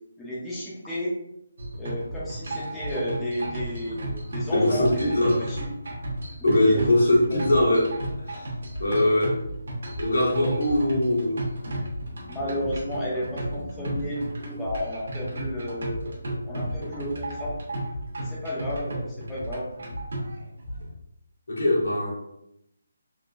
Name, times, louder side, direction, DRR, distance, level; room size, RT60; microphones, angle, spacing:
voice 1, 0.2-1.1 1.7-5.2 5.5-5.7 6.4-6.8 7.3-7.4 12.1-16.0 16.4-17.6 18.2-19.7, equal, 5° left, -8 dB, 0.5 m, -32 dB
sound 1, 1.6-20.9, right 1 dB, 65° right, 1.0 m, -34 dB
voice 2, 4.5-5.5 6.4-8.5 8.8-9.4 10.0-11.4 21.5-22.1, left 1 dB, 80° left, -4 dB, 1.5 m, -22 dB
3.7 x 2.5 x 2.4 m, 0.80 s
hypercardioid pair, 175°, 0 cm